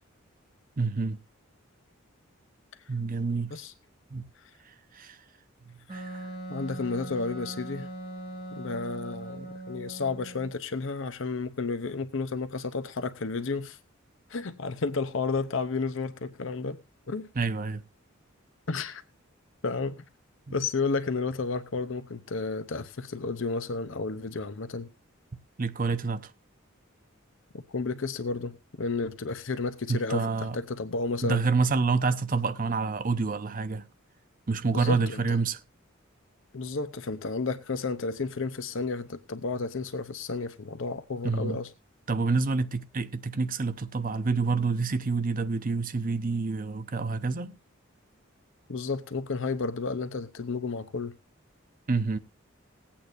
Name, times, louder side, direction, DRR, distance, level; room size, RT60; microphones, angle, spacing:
voice 1, 0.8-1.2 2.9-3.5 4.1-4.2 4.9-5.2 5.9-6.3 17.4-17.8 20.5-20.6 25.6-26.3 29.9-30.6 31.2-33.8 34.5-35.6 41.2-41.6 42.1-47.6 51.9-52.2, right 4 dB, 45° right, 0.7 m, -28 dB
Wind instrument woodwind instrument, 5.9-10.5, right 2 dB, 20° right, 7.8 m, -40 dB
voice 2, 6.5-7.9 8.5-13.8 14.3-16.8 17.1-17.3 18.7-19.0 19.6-20.0 20.5-24.9 27.7-31.4 34.7-35.4 36.5-41.7 48.7-51.1, left 4 dB, 65° left, 0.7 m, -32 dB
20.5 x 8.6 x 2.6 m
head